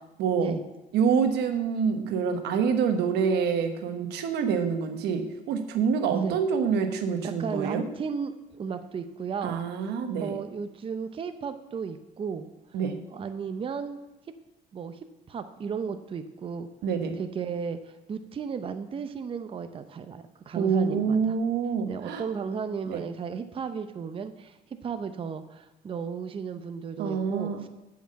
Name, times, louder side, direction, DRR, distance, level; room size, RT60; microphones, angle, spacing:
voice 1, 0.2-0.5 0.9-7.9 9.4-10.4 12.7-13.0 16.8-17.2 20.5-22.3 22.9-23.1 27.0-27.6, right 6 dB, 80° right, 7 dB, 1.2 m, -26 dB
voice 2, 7.2-9.6 10.2-12.5 13.1-14.0 14.7-15.0 15.3-16.7 17.2-21.3 21.9-27.7, right 6 dB, 30° right, 9 dB, 0.6 m, -34 dB
8.4 x 5.9 x 7.4 m, 1.0 s
cardioid pair, 110°, 17 cm